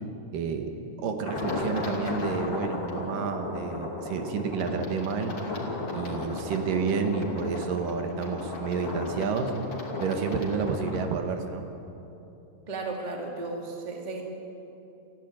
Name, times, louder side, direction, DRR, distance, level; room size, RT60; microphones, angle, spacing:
voice 1, 0.3-0.7 1.0-5.4 5.9-9.5 10.0-11.7, right 5 dB, 85° right, 5 dB, 3.1 m, -30 dB
sound 1, 1.2-11.1, left 2 dB, 40° left, 3.0 m, -35 dB
voice 2, 12.7-14.2, right 3 dB, 15° right, 1 dB, 1.9 m, -34 dB
28.5 x 11.0 x 8.8 m, 2.9 s
omnidirectional pair, 3.7 m